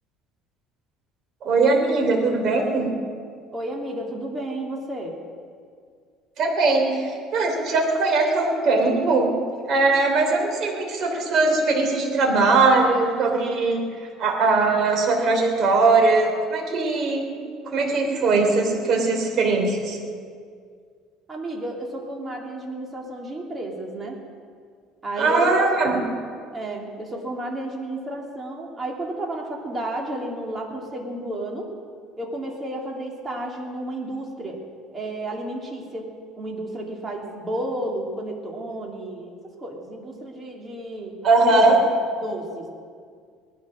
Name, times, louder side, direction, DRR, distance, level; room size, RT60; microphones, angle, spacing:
voice 1, 1.4-2.9 6.4-9.3 9.7-13.8 14.2-17.3 17.7-20.0 25.2-26.0 41.2-41.8, right 3 dB, 45° right, 2 dB, 3.5 m, -20 dB
voice 2, 3.5-5.2 21.3-24.2 25.0-25.7 26.5-31.7 32.2-34.6 34.9-36.1 36.4-41.1 41.5-42.7, right 1 dB, 20° right, 0 dB, 2.8 m, -32 dB
19.0 x 12.0 x 6.4 m, 2.1 s
cardioid pair, 135°, 0 cm